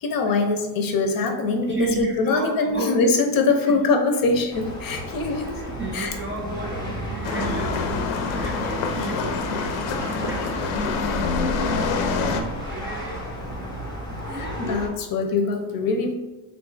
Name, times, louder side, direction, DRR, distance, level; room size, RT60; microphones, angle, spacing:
voice 1, 0.0-5.6 5.9-6.2 14.3-16.2, left 3 dB, 45° left, 4 dB, 0.6 m, -23 dB
voice 2, 1.6-3.1 3.7-3.8 5.4-13.4 14.0-14.9 15.5-15.6, right 3 dB, 30° right, -2 dB, 0.3 m, -33 dB
sound 1, 4.2-5.4 5.7-5.9 6.4-9.2 9.6-10.7 11.1-11.2 11.7-14.6, right 1 dB, 75° right, 0.8 m, -40 dB
sound 2, 4.5-14.9, left 1 dB, 10° left, 0.6 m, -34 dB
sound 3, 7.2-12.4, left 4 dB, 90° left, 0.6 m, -26 dB
3.6 x 2.4 x 3.7 m, 1.1 s
cardioid pair, 140°, 47 cm